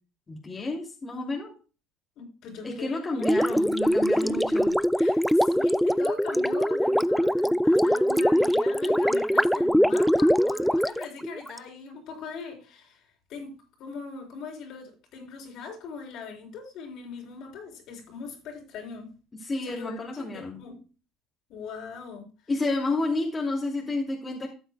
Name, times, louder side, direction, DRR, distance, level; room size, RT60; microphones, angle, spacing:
voice 1, 0.3-1.6 2.6-4.7 19.3-20.6 22.5-24.5, left 2 dB, 25° left, -1 dB, 2.5 m, -30 dB
voice 2, 2.2-3.3 4.2-4.4 5.0-13.0 13.3-13.5 13.8-19.1 19.7-20.0 20.3-20.8 21.5-22.3, left 5 dB, 60° left, 2 dB, 4.0 m, -40 dB
Gurgling, 3.2-11.6, equal, ahead, 0.3 m, -22 dB
13.5 x 7.8 x 2.2 m, 0.34 s
supercardioid pair, 105°, 0 cm